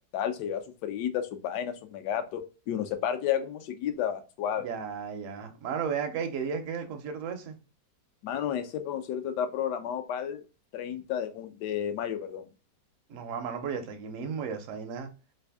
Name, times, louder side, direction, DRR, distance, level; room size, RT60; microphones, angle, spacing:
voice 1, 0.1-4.7 8.2-10.4 10.7-12.5, left 9 dB, 70° left, 1.1 m, -32 dB
voice 2, 4.6-7.6 13.1-15.1, right 6 dB, 65° right, 0.8 m, -34 dB
3.4 x 2.5 x 3.4 m
omnidirectional pair, 2.1 m